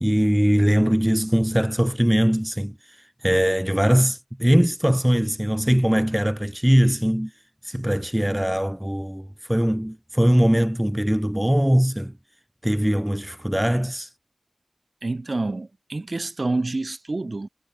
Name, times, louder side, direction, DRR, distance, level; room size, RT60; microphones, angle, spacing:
voice 1, 0.0-3.0 3.2-7.3 7.6-12.1 12.6-14.1, equal, 10° right, 0.3 m, -21 dB
voice 2, 15.0-17.5, right 2 dB, 65° right, 1.1 m, -28 dB
wide cardioid pair, 40°, 0 cm